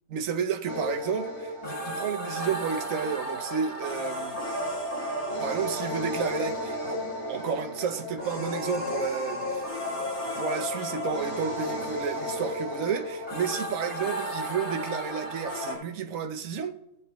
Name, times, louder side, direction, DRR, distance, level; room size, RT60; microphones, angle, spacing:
voice 1, 0.1-4.4 5.4-9.7 10.4-16.7, right 7 dB, 70° right, 1.2 m, -31 dB
sound 1, 0.7-15.7, left 1 dB, 50° left, 3.1 m, -33 dB
17.5 x 7.7 x 3.1 m
omnidirectional pair, 1.4 m